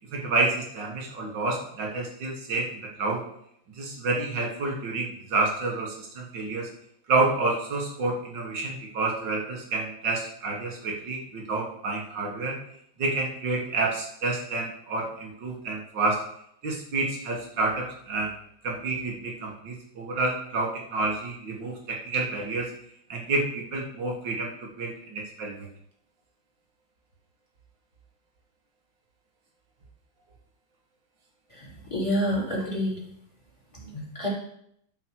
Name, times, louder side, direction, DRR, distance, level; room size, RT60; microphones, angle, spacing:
voice 1, 0.1-3.2 3.8-6.7 7.1-12.6 13.0-16.2 16.6-18.3 18.6-22.7 23.1-25.7, right 3 dB, 60° right, 0 dB, 2.2 m, -29 dB
voice 2, 31.5-32.9 33.7-34.3, equal, 15° left, -6 dB, 3.4 m, -28 dB
12.0 x 5.4 x 4.6 m, 0.71 s
omnidirectional pair, 2.3 m